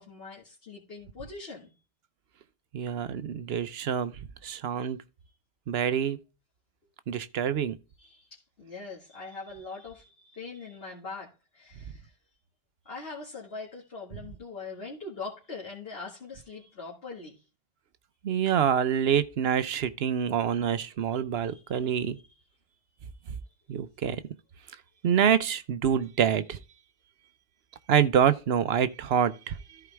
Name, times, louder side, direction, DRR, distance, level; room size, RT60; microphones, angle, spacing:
voice 1, 0.0-1.7 8.0-12.2 12.8-17.4 21.4-22.1 22.7-22.8 23.2-23.3, left 4 dB, 70° left, 2.1 m, -42 dB
voice 2, 2.7-4.1 4.4-5.0 5.7-6.2 7.1-7.8 18.2-22.2 23.7-24.2 25.0-26.6 27.9-29.8, right 8 dB, 80° right, 1.0 m, -26 dB
14.0 x 4.9 x 3.4 m
omnidirectional pair, 1.0 m